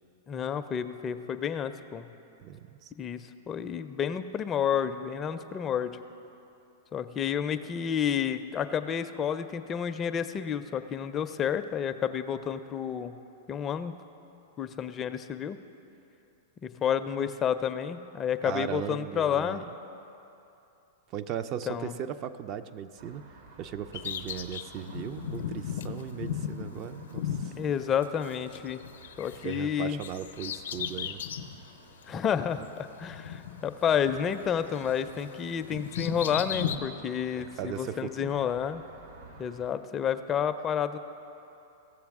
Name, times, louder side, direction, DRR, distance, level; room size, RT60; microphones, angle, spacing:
voice 1, 0.3-2.1 3.0-5.9 6.9-13.1 13.5-13.9 14.6-15.6 16.6-19.6 21.7-21.9 27.6-28.8 29.2-30.0 32.1-38.8 39.4-41.0, left 8 dB, 25° left, 10 dB, 0.4 m, -30 dB
voice 2, 2.4-2.9 18.4-19.7 21.1-23.2 23.6-27.6 29.4-31.2 36.7-36.8 37.4-38.5, right 9 dB, 40° right, 10 dB, 0.4 m, -37 dB
sound 1, 23.0-39.7, right 3 dB, 70° right, 1.4 m, -54 dB
Bird vocalization bird call bird song, 23.9-28.6 28.8-31.6 32.0-32.1 33.0-34.5 34.7-36.8, left 9 dB, 75° left, 0.6 m, -36 dB
16.0 x 7.0 x 3.6 m, 2.8 s
hypercardioid pair, 115°, 0 cm